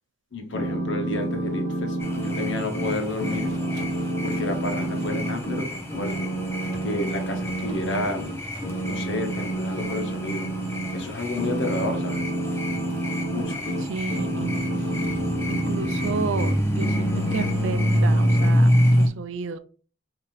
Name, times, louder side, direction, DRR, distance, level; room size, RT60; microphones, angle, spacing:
voice 1, 0.3-3.5 4.2-6.3 6.8-8.2 8.8-10.5 10.9-12.3 13.3-13.7, left 2 dB, 60° left, 1.1 m, -31 dB
sound 1, 0.5-5.6 5.9-8.3 8.6-11.0 11.4-16.5 16.8-18.6, right 1 dB, 40° left, 0.9 m, -29 dB
sound 2, 2.0-19.1, equal, 10° left, 0.6 m, -27 dB
sound 3, 3.0-10.2 10.5-12.1 12.9-15.5, equal, 20° right, 1.3 m, -47 dB
voice 2, 13.8-14.6 15.5-19.6, right 5 dB, 70° right, 0.4 m, -32 dB
5.7 x 2.8 x 3.1 m
head